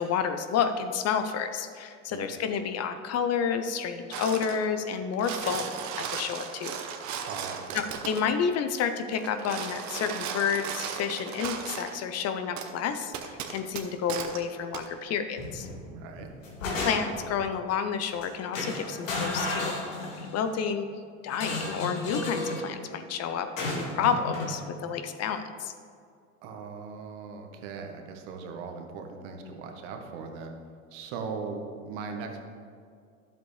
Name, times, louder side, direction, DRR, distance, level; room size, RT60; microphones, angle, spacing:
voice 1, 0.0-5.7 6.1-6.8 7.7-15.7 16.6-19.7 20.2-20.9 21.2-23.5 23.7-25.7, left 7 dB, 40° left, 9 dB, 0.7 m, -30 dB
sound 1, 4.1-4.6 5.0-8.3 9.2-12.0 12.6-12.7 13.1-14.4 14.7-14.9, right 7 dB, 45° right, 1.0 m, -36 dB
voice 2, 7.2-7.9 15.9-16.3 26.4-30.6 30.9-32.4, right 5 dB, 65° right, 4 dB, 1.3 m, -39 dB
sound 2, 15.4-15.8 16.2-17.3 18.1-18.3 18.5-20.4 21.3-22.7 23.6-24.6, left 2 dB, 85° left, 2.1 m, -33 dB
11.5 x 7.6 x 3.3 m, 2.2 s
hypercardioid pair, 85°, 38 cm